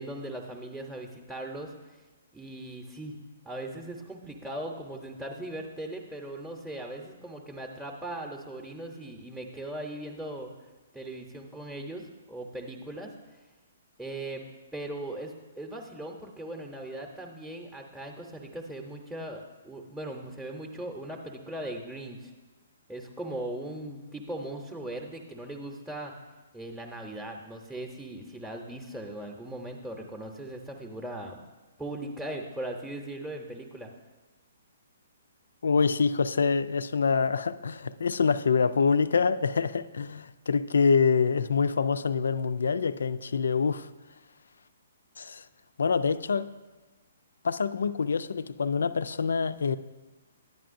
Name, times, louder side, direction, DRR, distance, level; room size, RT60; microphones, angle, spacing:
voice 1, 0.0-2.0 2.3-3.2 3.4-10.5 10.9-13.4 14.0-14.4 14.7-22.3 22.9-26.1 26.5-31.4 31.8-33.9, right 1 dB, 5° right, 2 dB, 0.7 m, -39 dB
voice 2, 35.6-43.9 45.2-45.5 45.8-46.5 47.4-49.8, left 5 dB, 70° left, 16 dB, 0.3 m, -26 dB
11.0 x 9.1 x 2.6 m, 1.2 s
figure-of-eight pair, 130°, 0 cm